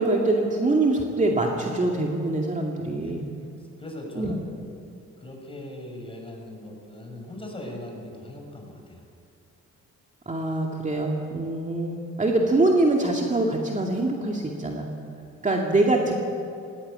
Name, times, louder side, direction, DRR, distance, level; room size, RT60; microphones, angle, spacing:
voice 1, 0.0-3.3 4.2-4.3 10.3-14.9 15.4-16.1, right 2 dB, 25° right, 0 dB, 2.4 m, -24 dB
voice 2, 2.8-3.2 3.8-4.6 5.2-9.0, left 1 dB, 20° left, 1 dB, 6.4 m, -40 dB
18.0 x 18.0 x 9.0 m, 2.5 s
cardioid pair, 90°, 30 cm